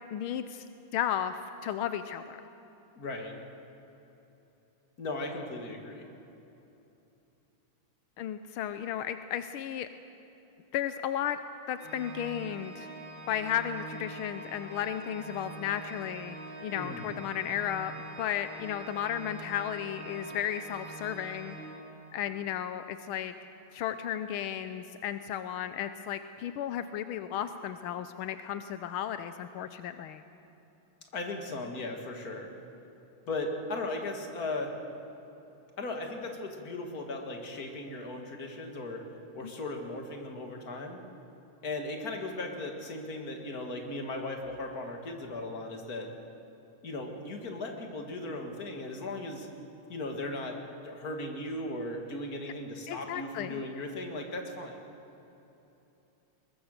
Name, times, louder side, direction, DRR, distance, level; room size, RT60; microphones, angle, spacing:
voice 1, 0.1-0.6 0.9-2.4 8.2-9.9 10.7-11.4 11.7-12.9 13.3-17.9 18.2-21.6 22.1-23.3 23.7-30.2 39.4-39.5 52.9-53.6, left 10 dB, 85° left, 10 dB, 1.6 m, -34 dB
voice 2, 3.0-3.4 5.0-6.0 16.7-17.1 31.1-32.5 33.3-34.7 35.8-39.0 39.3-41.0 41.6-46.1 46.8-49.5 49.9-50.6 50.8-54.9, left 2 dB, 45° left, 3 dB, 2.5 m, -37 dB
Organ, 11.8-22.4, right 2 dB, 65° right, 2.5 m, -45 dB
21.5 x 21.5 x 6.6 m, 3.0 s
omnidirectional pair, 2.3 m